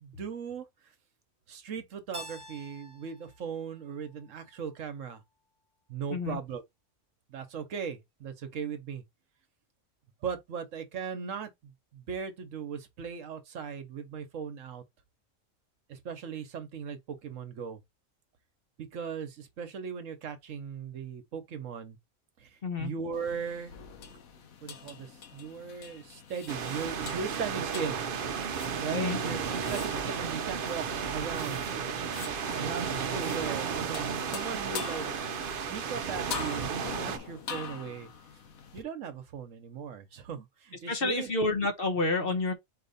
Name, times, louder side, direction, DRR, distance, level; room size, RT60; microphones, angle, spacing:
voice 1, 0.0-0.7 1.5-5.2 5.9-6.6 7.3-9.0 10.2-14.8 15.9-17.8 18.8-22.0 22.4-23.7 24.6-28.0 28.8-31.7 32.5-38.1 38.7-41.3, right 6 dB, 70° right, 1.2 m, -38 dB
Keyboard (musical), 2.1-4.9, left 1 dB, 25° right, 1.2 m, -49 dB
sound 1, 23.1-38.8, left 7 dB, 80° left, 1.3 m, -44 dB
sound 2, 26.5-37.2, right 6 dB, 50° right, 0.7 m, -33 dB
voice 2, 40.9-42.5, left 3 dB, 45° left, 1.0 m, -29 dB
4.3 x 3.0 x 4.0 m
omnidirectional pair, 1.4 m